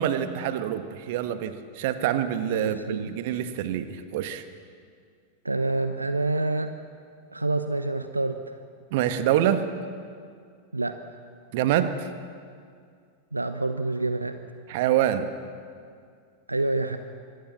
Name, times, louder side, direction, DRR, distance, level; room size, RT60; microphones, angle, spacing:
voice 1, 0.0-4.4 8.9-9.6 11.5-12.1 14.7-15.3, right 11 dB, 50° right, 9 dB, 1.5 m, -26 dB
voice 2, 2.4-3.1 5.4-6.7 7.3-8.4 10.7-10.9 13.3-14.4 16.5-17.0, right 2 dB, 80° right, 9 dB, 0.9 m, -27 dB
24.5 x 19.5 x 7.3 m, 2.2 s
figure-of-eight pair, 90°, 0 cm